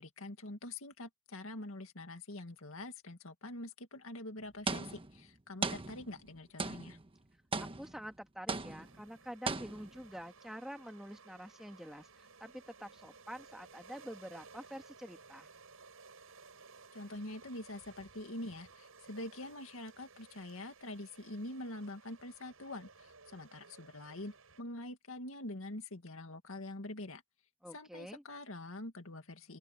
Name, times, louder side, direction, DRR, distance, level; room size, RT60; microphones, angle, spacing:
voice 1, 0.0-7.0 16.9-27.2 27.7-29.6, left 1 dB, 75° left, 2.2 m, -45 dB
sound 1, 4.7-5.3 5.6-6.3 6.6-7.1 7.5-8.1 8.5-9.0 9.5-10.1, right 4 dB, 25° right, 1.2 m, -38 dB
voice 2, 7.6-15.5 27.6-28.2, equal, ahead, 1.9 m, -47 dB
sound 2, 8.6-24.6, right 4 dB, 90° right, 6.2 m, -58 dB
open air
head